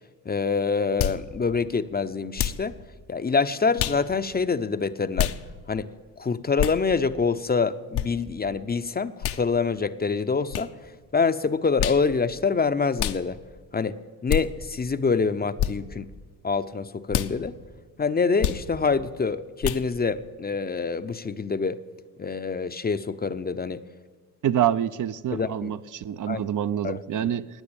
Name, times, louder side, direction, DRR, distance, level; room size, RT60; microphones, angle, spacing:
voice 1, 0.3-2.8 3.1-5.3 5.7-5.9 6.2-10.7 11.1-13.4 13.7-16.1 16.4-17.6 18.0-21.8 22.2-23.8 25.3-25.7 26.3-26.4 26.8-27.3, left 4 dB, 25° left, 0.6 m, -26 dB
sound 1, 1.0-1.2 2.4-2.7 3.8-4.0 5.2-5.4 6.6-6.8 7.9-8.1 9.2-9.4 10.5-10.7 11.8-12.0 13.0-13.2 14.3-14.4 15.6-15.7 17.1-17.3 18.4-18.6 19.6-19.8, left 11 dB, 70° left, 0.8 m, -26 dB
voice 2, 24.4-27.5, right 10 dB, 50° right, 0.6 m, -26 dB
15.5 x 9.7 x 8.7 m
supercardioid pair, 75°, 41 cm